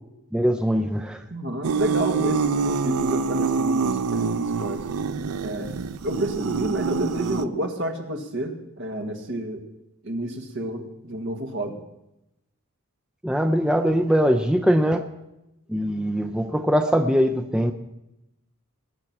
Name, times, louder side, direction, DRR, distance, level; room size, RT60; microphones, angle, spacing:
voice 1, 0.3-1.2 13.2-15.0 15.7-17.7, equal, 5° right, 5 dB, 0.5 m, -21 dB
voice 2, 1.3-4.9 5.4-5.7 6.0-9.6 10.0-11.8, right 1 dB, 55° right, 4 dB, 1.6 m, -30 dB
sound 1, 1.6-7.5, right 5 dB, 80° right, 0.5 m, -26 dB
20.5 x 7.0 x 5.9 m, 0.91 s
head